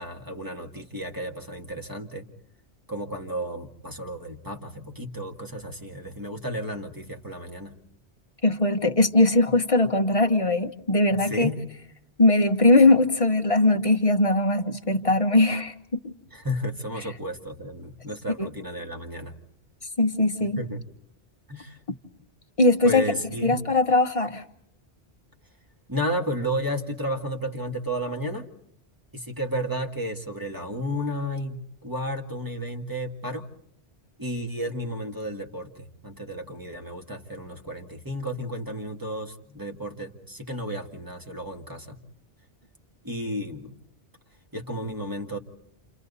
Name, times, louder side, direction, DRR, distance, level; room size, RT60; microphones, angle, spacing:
voice 1, 0.0-2.3 2.9-7.8 11.1-11.6 16.3-19.4 20.6-20.8 21.5-21.8 22.8-23.6 25.9-28.5 29.1-33.5 34.2-42.0 43.0-43.8 44.5-45.4, equal, 15° right, 3 dB, 2.0 m, -32 dB
voice 2, 8.4-11.5 12.2-15.7 18.4-18.5 20.0-20.6 22.6-23.0 23.4-24.4, left 2 dB, 30° left, 6 dB, 1.2 m, -20 dB
29.0 x 29.0 x 4.1 m, 0.70 s
omnidirectional pair, 1.2 m